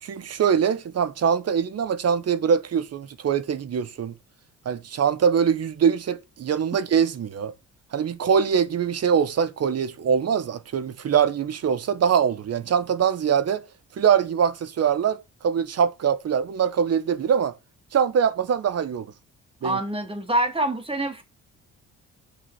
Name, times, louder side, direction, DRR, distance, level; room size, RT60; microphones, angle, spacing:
voice 1, 0.0-4.1 4.6-7.5 7.9-13.6 14.0-17.5 17.9-19.1 19.6-19.8, right 7 dB, 55° right, 1.4 m, -23 dB
voice 2, 19.6-21.2, right 1 dB, 20° right, 3.7 m, -25 dB
8.6 x 6.2 x 6.1 m
cardioid pair, 90°, 30 cm